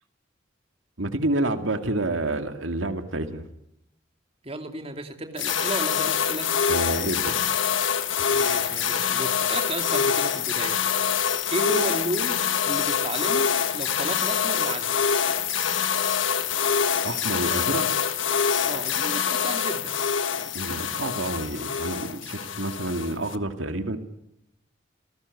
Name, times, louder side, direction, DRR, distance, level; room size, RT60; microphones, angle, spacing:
voice 1, 1.0-3.4 6.7-7.3 17.0-17.9 20.5-24.0, right 2 dB, 80° right, 8 dB, 2.3 m, -28 dB
voice 2, 4.4-6.5 8.3-10.8 11.5-15.0 18.7-20.0, right 1 dB, 30° right, 6 dB, 2.8 m, -33 dB
sound 1, 5.4-23.4, left 7 dB, 80° left, 1.6 m, -25 dB
29.0 x 19.0 x 9.6 m, 0.82 s
head